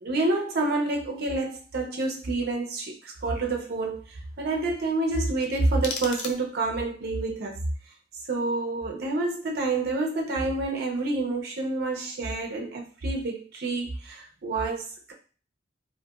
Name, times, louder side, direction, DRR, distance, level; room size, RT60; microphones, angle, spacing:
voice 1, 0.0-7.6 8.3-15.1, right 2 dB, 60° right, 1 dB, 0.5 m, -28 dB
sound 1, 5.4-6.8, left 4 dB, 75° left, 0.4 m, -37 dB
2.7 x 2.5 x 2.3 m, 0.39 s
head